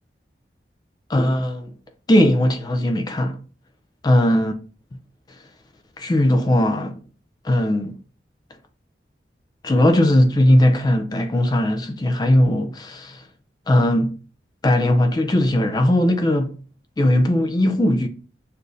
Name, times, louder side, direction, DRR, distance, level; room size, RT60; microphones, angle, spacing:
voice 1, 1.1-1.7 2.1-3.4 4.0-4.5 6.0-7.0 7.4-8.0 9.6-13.2 13.7-14.1 14.6-16.5 17.0-18.1, left 1 dB, 20° left, 0.3 m, -18 dB
6.4 x 2.5 x 2.5 m
head